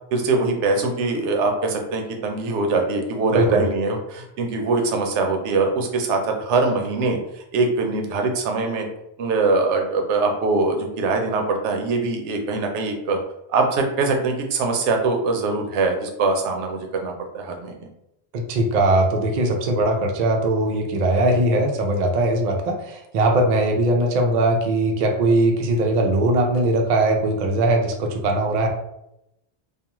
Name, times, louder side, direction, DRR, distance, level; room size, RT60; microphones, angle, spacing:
voice 1, 0.1-7.2 7.5-8.9 9.2-13.2 13.5-17.9, right 3 dB, 90° right, 3 dB, 0.9 m, -22 dB
voice 2, 3.3-3.6 18.3-28.7, right 2 dB, 55° right, 2 dB, 0.5 m, -20 dB
2.4 x 2.3 x 2.9 m, 0.84 s
omnidirectional pair, 1.2 m